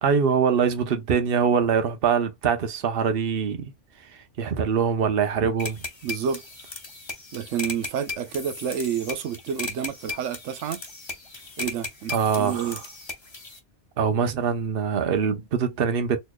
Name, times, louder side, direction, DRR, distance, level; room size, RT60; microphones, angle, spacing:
voice 1, 0.0-3.7 4.4-5.8 12.1-12.8 14.0-16.2, right 6 dB, 55° right, 0.9 m, -23 dB
sound 1, 5.6-13.6, left 3 dB, 25° left, 0.9 m, -37 dB
voice 2, 6.0-6.4 7.3-10.8 11.6-12.8, right 8 dB, 85° right, 1.0 m, -29 dB
4.2 x 3.1 x 2.2 m
omnidirectional pair, 1.2 m